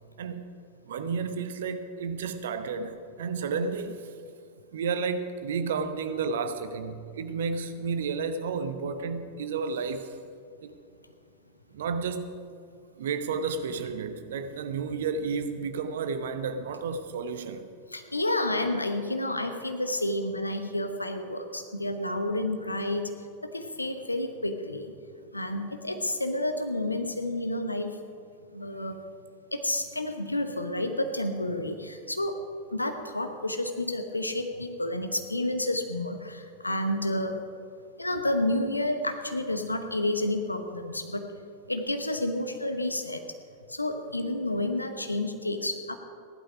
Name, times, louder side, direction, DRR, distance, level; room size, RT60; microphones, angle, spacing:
voice 1, 0.2-0.5 0.8-4.0 4.7-10.1 10.6-10.7 11.7-12.3 13.0-17.7 25.9-26.1, right 5 dB, 60° right, 0.9 m, -32 dB
voice 2, 17.9-23.1 23.4-24.9 25.3-28.0 28.5-29.0 29.5-32.4 32.7-37.4 38.0-41.3 41.7-43.2 43.7-46.0, left 1 dB, 85° left, 1.0 m, -30 dB
16.0 x 11.5 x 5.0 m
figure-of-eight pair, 90°, 0 cm